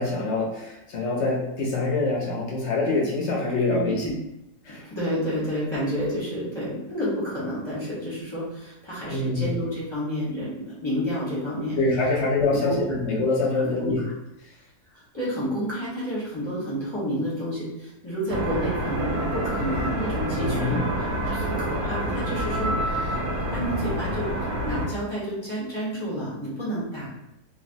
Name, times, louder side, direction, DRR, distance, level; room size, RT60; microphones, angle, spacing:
voice 1, 0.0-4.1 4.6-4.8 9.1-9.4 11.7-14.0 20.4-20.9, left 3 dB, 65° left, -3 dB, 0.7 m, -25 dB
voice 2, 3.7-4.1 4.7-11.8 12.5-12.8 13.5-14.1 14.9-23.2 23.5-24.3 24.6-27.1, equal, 25° left, -9 dB, 0.7 m, -30 dB
sound 1, 18.3-24.9, right 1 dB, 85° right, 1.2 m, -27 dB
3.2 x 2.2 x 2.5 m, 0.87 s
omnidirectional pair, 1.7 m